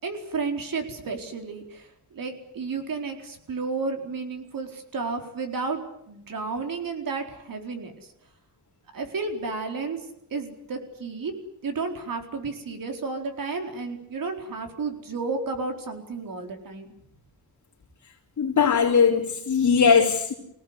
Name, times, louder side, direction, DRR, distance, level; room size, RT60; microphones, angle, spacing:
voice 1, 0.0-7.9 8.9-10.0 10.3-11.3 11.6-16.9, right 4 dB, 55° right, 4 dB, 4.5 m, -32 dB
voice 2, 18.4-20.3, left 6 dB, 45° left, -5 dB, 4.0 m, -20 dB
26.5 x 18.0 x 9.8 m, 0.81 s
wide cardioid pair, 155°, 39 cm